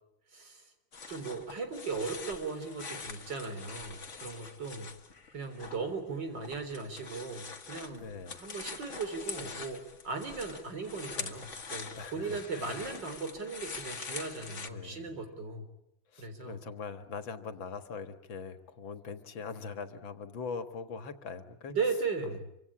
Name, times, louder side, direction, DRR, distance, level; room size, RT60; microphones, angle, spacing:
voice 1, 0.3-0.6 1.1-4.9 5.3-8.0 8.4-15.6 16.2-16.6 21.7-22.5, right 4 dB, 65° right, 7 dB, 4.3 m, -37 dB
sound 1, 0.9-5.8 6.1-14.7, left 5 dB, 40° left, 1.9 m, -44 dB
voice 2, 7.9-8.4 11.9-12.8 14.7-15.2 16.1-21.8, left 5 dB, 90° left, 9 dB, 2.4 m, -42 dB
27.0 x 25.0 x 8.6 m, 0.77 s
omnidirectional pair, 2.1 m